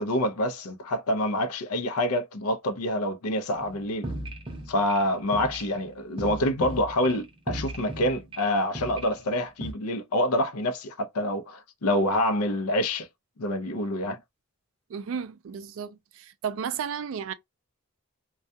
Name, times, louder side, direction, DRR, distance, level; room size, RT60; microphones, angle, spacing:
voice 1, 0.0-4.1 4.7-13.1 13.4-14.2, left 1 dB, 90° left, 0.6 m, -27 dB
sound 1, 3.5-9.7, right 1 dB, 25° right, 0.6 m, -38 dB
voice 2, 14.9-17.3, right 7 dB, 65° right, 0.3 m, -33 dB
2.3 x 2.2 x 2.6 m
head